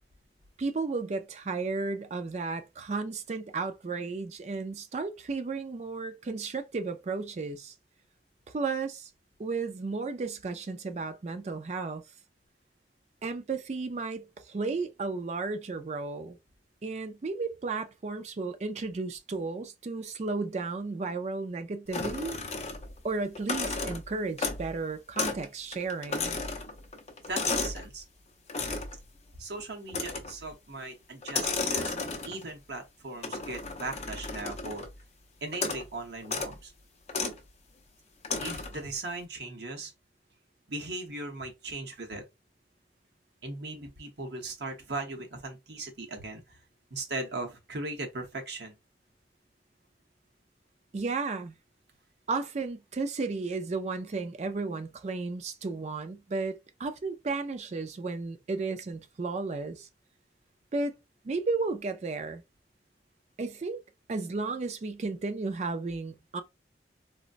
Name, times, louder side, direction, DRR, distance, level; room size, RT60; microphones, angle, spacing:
voice 1, 0.6-7.7 8.5-9.1 9.4-12.0 13.2-16.4 16.8-22.4 23.0-26.3 50.9-51.5 52.3-59.9 60.7-60.9 61.2-62.4 63.4-63.8 64.1-66.4, right 3 dB, 40° right, 0.4 m, -33 dB
sound 1, 21.9-23.0 23.3-24.8 25.2-25.5 25.7-27.9 28.5-29.0 29.9-30.4 31.2-32.5 33.2-34.9 35.5-35.9 36.2-36.5 37.1-37.4 38.2-38.8, left 4 dB, 40° left, 0.5 m, -33 dB
voice 2, 27.3-28.0 29.3-31.9 32.2-34.9 35.4-36.7 38.4-39.9 40.7-42.3 43.4-46.6 46.9-48.8, right 2 dB, 70° right, 0.9 m, -38 dB
3.9 x 2.1 x 2.5 m
head